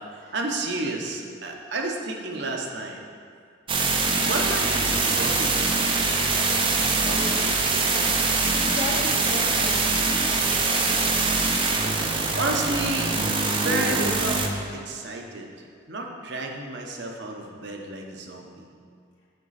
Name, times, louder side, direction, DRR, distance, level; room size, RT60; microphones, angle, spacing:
voice 1, 0.3-3.0 4.1-5.9 10.9-11.3 12.3-14.4 14.7-15.5 15.9-18.6, right 2 dB, 65° right, 1 dB, 0.8 m, -31 dB
sound 1, 3.7-14.5, right 3 dB, 25° right, 0.6 m, -23 dB
voice 2, 6.8-10.5, left 1 dB, 70° left, -6 dB, 1.9 m, -36 dB
8.0 x 5.7 x 4.1 m, 2.2 s
head